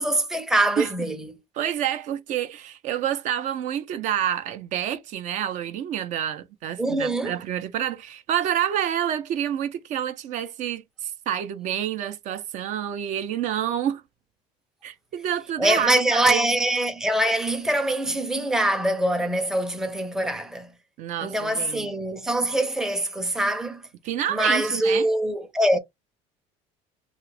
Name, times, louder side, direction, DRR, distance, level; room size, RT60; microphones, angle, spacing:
voice 1, 0.0-1.3 6.8-7.4 15.6-20.7 21.2-23.8 24.3-25.8, right 1 dB, 5° right, 0.5 m, -24 dB
voice 2, 1.5-14.0 14.8-16.5 21.0-21.9 24.0-25.1, right 10 dB, 60° right, 0.5 m, -28 dB
2.9 x 2.3 x 3.2 m
cardioid pair, 120°, 15 cm